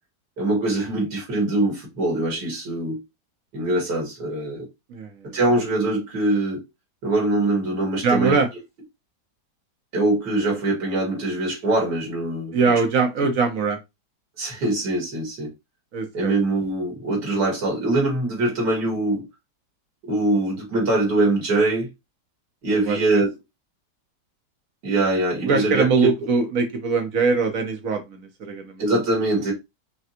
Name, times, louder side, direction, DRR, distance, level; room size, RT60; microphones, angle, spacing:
voice 1, 0.4-3.0 3.5-4.7 5.3-6.6 7.0-8.4 9.9-12.5 14.4-15.5 16.1-19.2 20.0-21.9 22.6-23.3 24.8-25.8 28.8-29.5, right 2 dB, 80° right, 2.5 m, -23 dB
voice 2, 4.9-5.4 8.0-8.5 12.5-13.8 15.9-16.3 22.7-23.2 25.4-28.8, right 4 dB, 55° right, 1.2 m, -22 dB
5.8 x 2.3 x 2.8 m
omnidirectional pair, 1.8 m